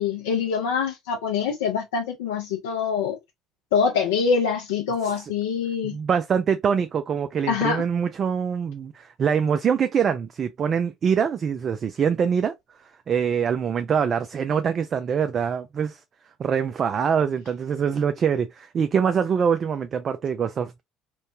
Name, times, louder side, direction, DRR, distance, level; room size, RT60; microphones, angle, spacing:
voice 1, 0.0-3.2 3.7-6.0 7.5-7.8, left 6 dB, 85° left, 0.5 m, -24 dB
voice 2, 5.8-12.5 13.1-16.0 16.4-20.8, right 7 dB, 45° right, 0.3 m, -24 dB
3.1 x 2.1 x 2.5 m
hypercardioid pair, 70°, 0 cm